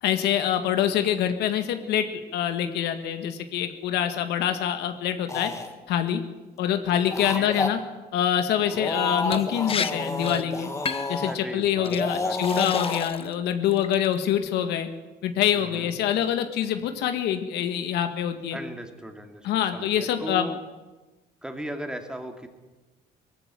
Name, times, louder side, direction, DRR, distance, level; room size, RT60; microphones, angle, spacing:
voice 1, 0.0-5.5 5.9-6.2 6.6-7.8 8.1-10.7 11.1-14.9 15.2-18.6 19.4-20.5, left 10 dB, 85° left, 7 dB, 1.8 m, -25 dB
sound 1, 5.3-5.7 6.9-7.7 8.6-11.3 11.8-13.0, left 2 dB, 20° left, 2.4 m, -30 dB
Liquid, 9.3-9.4 9.7-9.9 10.2-10.4 10.9-11.2 11.8-12.0 12.4-13.3 13.7-14.1, left 6 dB, 35° left, 1.2 m, -31 dB
voice 2, 11.2-12.6 15.5-15.9 18.5-19.5 19.7-20.6 21.4-22.5, right 1 dB, 5° right, 4 dB, 2.8 m, -37 dB
19.0 x 15.5 x 10.0 m, 1.2 s
cardioid pair, 110°, 17 cm